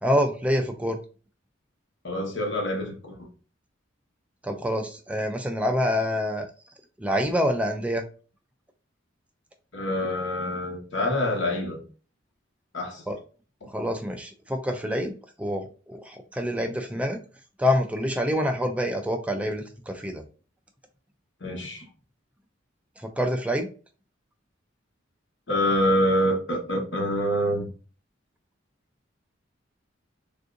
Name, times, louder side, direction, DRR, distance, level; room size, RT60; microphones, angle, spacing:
voice 1, 0.0-1.0 4.4-6.5 7.0-8.0 13.1-13.2 13.7-17.2 17.6-20.2 23.2-23.7, equal, 5° right, 0.3 m, -26 dB
voice 2, 2.0-3.2 9.7-11.8 12.7-13.0 21.4-21.8 25.5-27.7, equal, 70° left, 1.1 m, -26 dB
3.4 x 2.6 x 2.5 m
head